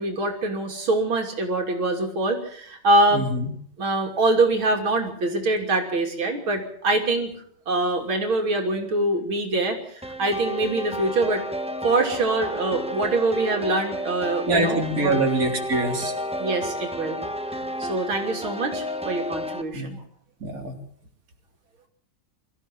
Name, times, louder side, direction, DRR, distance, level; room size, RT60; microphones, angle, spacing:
voice 1, 0.0-3.3 3.8-7.3 7.7-11.4 11.8-15.2 16.4-17.2 17.8-20.0, right 2 dB, 85° right, 3 dB, 3.7 m, -24 dB
voice 2, 3.1-3.5 14.5-16.1 19.7-19.9 20.4-20.7, right 2 dB, 45° right, 2 dB, 3.9 m, -24 dB
sound 1, 10.0-19.6, equal, 5° right, 1.0 m, -32 dB
24.0 x 14.5 x 7.6 m, 0.62 s
omnidirectional pair, 2.2 m